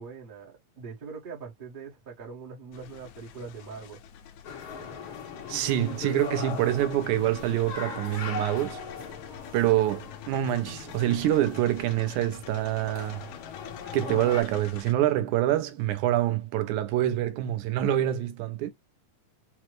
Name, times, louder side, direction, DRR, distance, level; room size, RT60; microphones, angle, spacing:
voice 1, 0.0-4.0, right 5 dB, 40° right, 0.7 m, -42 dB
sound 1, 2.7-14.9, left 9 dB, 85° left, 2.1 m, -47 dB
sound 2, 4.4-14.4, left 5 dB, 55° left, 1.7 m, -40 dB
voice 2, 5.5-8.8 9.5-13.3 13.9-18.7, right 13 dB, 80° right, 2.1 m, -26 dB
5.8 x 2.1 x 3.0 m
omnidirectional pair, 3.5 m